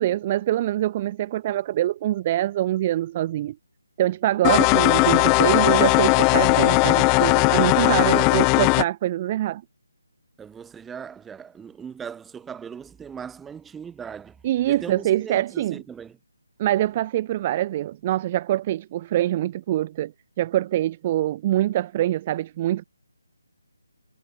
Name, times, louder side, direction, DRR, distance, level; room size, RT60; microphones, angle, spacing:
voice 1, 0.0-3.6 4.0-9.6 14.4-15.8 16.6-20.1 20.4-22.8, right 13 dB, 25° right, 0.8 m, -24 dB
sound 1, 4.4-8.8, left 34 dB, 15° left, 0.7 m, -18 dB
voice 2, 7.7-8.3 10.4-14.4 14.7-16.2, right 7 dB, 5° right, 4.6 m, -39 dB
figure-of-eight pair, 150°, 0 cm